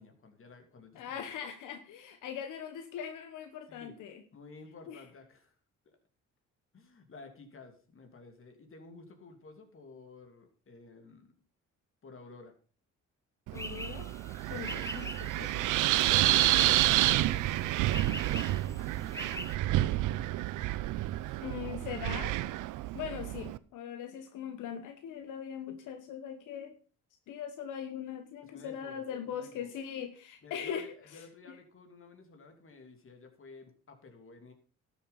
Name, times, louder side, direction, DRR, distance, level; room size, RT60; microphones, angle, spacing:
voice 1, 0.0-1.3 3.7-3.9 4.3-5.5 5.8-6.0 6.7-11.3 12.0-12.5 16.8-20.0 21.2-21.4 28.4-29.7 30.4-34.5, left 3 dB, 45° left, 6 dB, 2.9 m, -53 dB
voice 2, 0.9-4.2 4.9-5.0 13.5-14.1 14.5-15.7 20.9-21.1 21.4-22.4 22.9-26.8 27.3-30.9 31.1-31.2, left 8 dB, 90° left, 7 dB, 1.2 m, -40 dB
Wind, 13.5-23.6, right 16 dB, 85° right, 0.6 m, -29 dB
sound 1, 13.6-19.6, left 1 dB, 10° left, 1.2 m, -44 dB
12.5 x 7.5 x 5.4 m, 0.38 s
cardioid pair, 90°, 30 cm